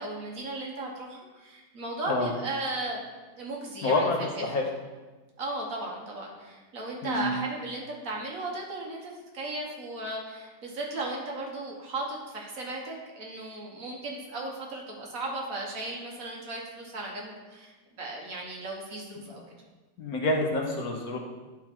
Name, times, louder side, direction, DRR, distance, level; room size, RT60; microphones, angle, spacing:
voice 1, 0.0-3.1 3.4-4.4 5.4-19.4, right 2 dB, 55° right, -1 dB, 1.5 m, -36 dB
voice 2, 3.8-4.6 7.0-7.3 20.0-21.2, left 2 dB, 60° left, 0 dB, 1.3 m, -27 dB
10.5 x 4.0 x 4.5 m, 1.2 s
omnidirectional pair, 1.9 m